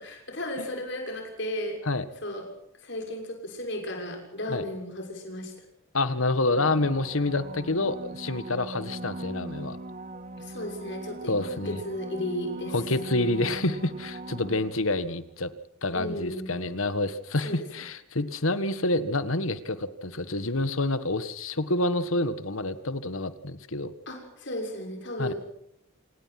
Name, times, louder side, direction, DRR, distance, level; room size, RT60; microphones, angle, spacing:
voice 1, 0.0-1.8 2.2-2.5 2.8-5.5 10.4-12.8 15.9-16.6 17.4-17.6 24.1-25.4, left 1 dB, 55° left, 3 dB, 6.4 m, -34 dB
voice 2, 5.9-9.8 11.3-11.8 12.7-15.5 15.8-23.9 25.2-25.3, left 2 dB, 75° left, 13 dB, 1.6 m, -28 dB
sound 1, 6.5-15.1 20.5-20.6, right 1 dB, 35° right, 1.1 m, -40 dB
27.0 x 19.5 x 6.0 m, 0.78 s
head